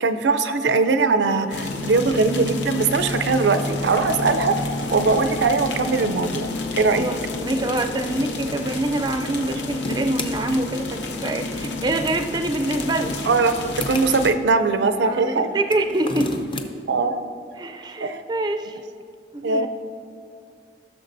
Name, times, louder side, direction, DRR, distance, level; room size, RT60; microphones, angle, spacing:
voice 1, 0.0-4.6 4.9-7.1 13.3-13.6 13.9-15.5 16.9-17.2 18.0-18.2 19.4-19.7, right 4 dB, 90° right, 10 dB, 0.5 m, -20 dB
sound 1, 1.5-14.3, left 2 dB, 85° left, 0.7 m, -30 dB
voice 2, 6.9-13.2 15.0-16.5 17.6-18.8 19.3-19.7, right 2 dB, 25° right, 6 dB, 0.4 m, -25 dB
sound 2, 9.4-10.3 12.6-14.1 15.6-16.7, left 2 dB, 30° left, 0.5 m, -31 dB
15.0 x 6.6 x 2.6 m, 2.4 s
head